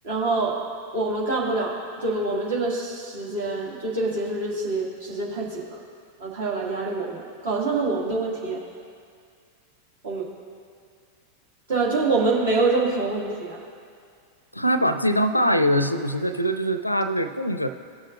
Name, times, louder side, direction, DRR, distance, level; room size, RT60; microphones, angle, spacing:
voice 1, 0.0-0.5 0.9-5.8 6.2-8.6 10.0-10.2 11.7-13.6, right 3 dB, 60° right, -4 dB, 2.1 m, -25 dB
voice 2, 14.5-17.7, equal, 85° left, 12 dB, 0.5 m, -22 dB
17.5 x 6.4 x 2.5 m, 2.2 s
figure-of-eight pair, 90°, 0 cm